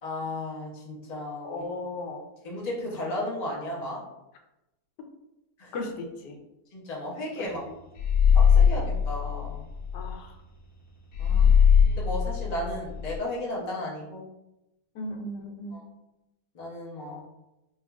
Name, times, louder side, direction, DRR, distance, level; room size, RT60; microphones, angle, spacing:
voice 1, 0.0-1.7 2.4-4.0 5.6-5.9 6.7-7.6 8.3-9.7 11.2-14.3 15.7-15.8 16.5-17.2, left 1 dB, 50° left, -3 dB, 0.4 m, -34 dB
voice 2, 1.4-2.2 5.7-6.4 7.7-7.8 9.9-10.3 14.9-15.8, left 2 dB, 90° left, 4 dB, 1.2 m, -36 dB
sound 1, 8.0-10.1 11.1-13.2, left 7 dB, 70° left, 1.4 m, -21 dB
4.3 x 2.4 x 2.3 m, 0.93 s
omnidirectional pair, 1.7 m